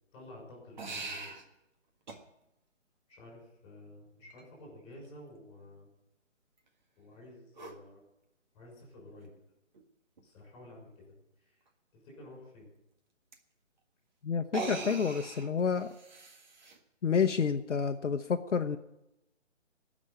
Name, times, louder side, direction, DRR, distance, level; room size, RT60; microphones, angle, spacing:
voice 1, 0.1-1.4 3.1-5.9 7.0-8.0 8.5-9.3 10.2-11.6 11.9-12.7, left 1 dB, 15° left, -2 dB, 6.0 m, -51 dB
sound 1, 0.8-1.4 2.1-2.2 4.3-4.4 7.5-7.8 9.2-9.3 9.7-9.8 10.2-10.3 13.3-13.4 14.4-16.8, right 3 dB, 35° right, 1.7 m, -41 dB
voice 2, 14.2-15.9 17.0-18.8, left 6 dB, 70° left, 6 dB, 0.9 m, -29 dB
18.5 x 6.4 x 9.2 m, 0.89 s
hypercardioid pair, 160°, 37 cm